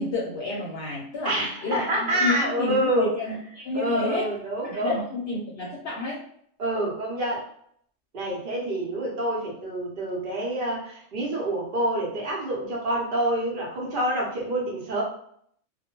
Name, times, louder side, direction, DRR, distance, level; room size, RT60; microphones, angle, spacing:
voice 1, 0.0-4.3 4.6-6.2, left 2 dB, 60° left, -4 dB, 0.8 m, -30 dB
voice 2, 1.2-3.1 3.7-5.0 6.6-7.4 8.1-15.0, right 1 dB, 50° right, -2 dB, 0.9 m, -27 dB
2.3 x 2.1 x 2.9 m, 0.66 s
omnidirectional pair, 1.3 m